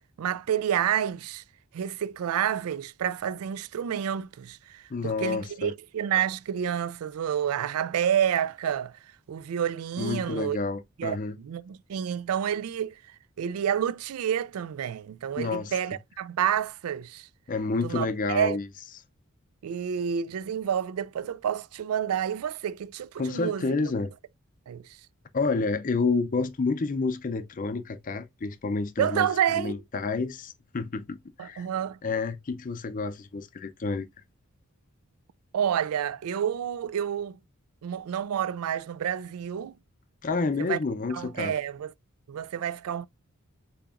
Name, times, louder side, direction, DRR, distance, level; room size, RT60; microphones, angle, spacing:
voice 1, 0.2-1.4 1.7-10.6 11.0-13.0 13.4-17.3 17.8-18.6 19.6-23.7 24.7-25.0 29.0-29.7 31.4-32.0 35.5-37.4 37.8-39.8 40.6-40.8 41.1-41.9 42.3-43.1, right 9 dB, 80° right, 0.3 m, -29 dB
voice 2, 4.9-5.7 10.0-11.4 15.4-15.7 17.5-18.7 23.2-24.1 25.3-29.3 29.5-31.7 32.0-34.1 40.2-41.5, left 3 dB, 35° left, 0.4 m, -29 dB
6.9 x 2.9 x 2.4 m
head